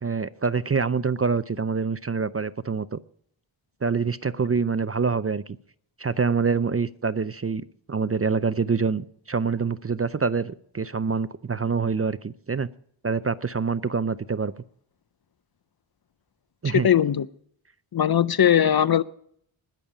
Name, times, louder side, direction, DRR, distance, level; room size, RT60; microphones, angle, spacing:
voice 1, 0.0-3.0 3.8-5.4 6.0-12.7 13.0-14.5 16.6-16.9, right 5 dB, 30° right, 0.5 m, -26 dB
voice 2, 16.7-17.3 17.9-19.0, left 9 dB, 50° left, 0.5 m, -19 dB
20.0 x 7.2 x 5.0 m
wide cardioid pair, 70°, 50 cm